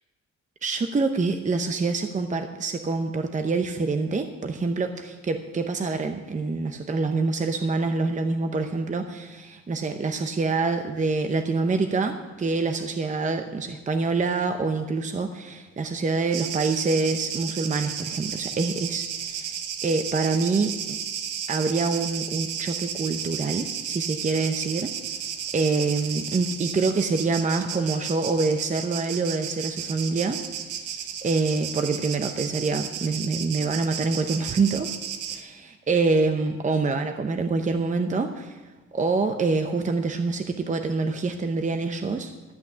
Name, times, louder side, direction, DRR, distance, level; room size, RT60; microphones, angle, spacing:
voice 1, 0.6-21.0 21.5-24.9 25.2-30.4 30.7-34.9 35.3-38.6 38.9-42.3, right 3 dB, 25° right, 7 dB, 0.7 m, -26 dB
sound 1, 16.3-35.4, right 8 dB, 85° right, 1.0 m, -33 dB
13.0 x 6.0 x 8.6 m, 1.2 s
cardioid pair, 90°, 30 cm